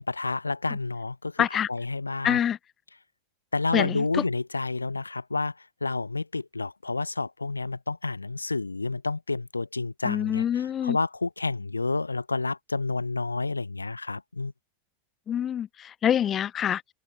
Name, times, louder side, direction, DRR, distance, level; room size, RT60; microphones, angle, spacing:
voice 1, 0.0-2.4 3.5-14.5, left 3 dB, 80° left, 1.0 m, -30 dB
voice 2, 1.4-1.7 2.2-2.6 3.7-4.0 10.1-11.0 15.3-16.8, left 9 dB, 25° left, 0.4 m, -25 dB
open air
figure-of-eight pair, 90°, 0 cm